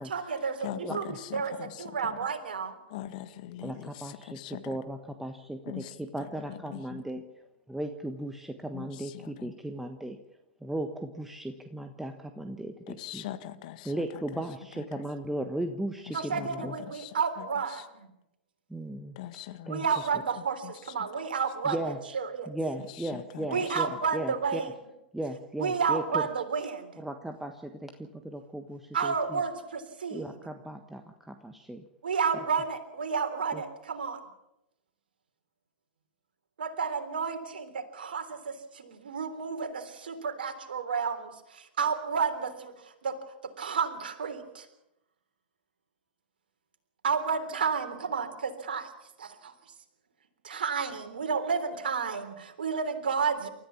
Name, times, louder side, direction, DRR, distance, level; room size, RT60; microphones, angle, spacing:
voice 1, 0.0-2.8 16.1-18.1 19.7-21.8 22.1-22.5 23.5-24.7 25.6-26.9 28.9-30.4 32.0-34.2 36.6-43.2 43.4-44.7 47.0-48.3 48.7-48.9 49.2-49.5 50.4-53.5, right 5 dB, 70° right, 7 dB, 3.6 m, -31 dB
voice 2, 0.6-2.3 2.9-4.8 5.7-7.0 8.7-9.5 12.9-14.4 14.8-14.9 16.1-17.5 17.7-17.9 19.2-20.0 20.6-21.1 22.9-24.0, left 13 dB, 50° left, 11 dB, 1.7 m, -42 dB
voice 3, 3.6-7.2 7.7-10.2 10.6-13.2 13.8-16.8 18.7-19.2 19.7-19.8 21.6-22.0 22.5-23.9 24.1-24.6 25.1-26.3 27.0-29.4 30.1-31.8 33.5-33.6, right 1 dB, 5° right, 5 dB, 1.4 m, -36 dB
29.0 x 14.0 x 7.2 m, 0.88 s
figure-of-eight pair, 100°, 5 cm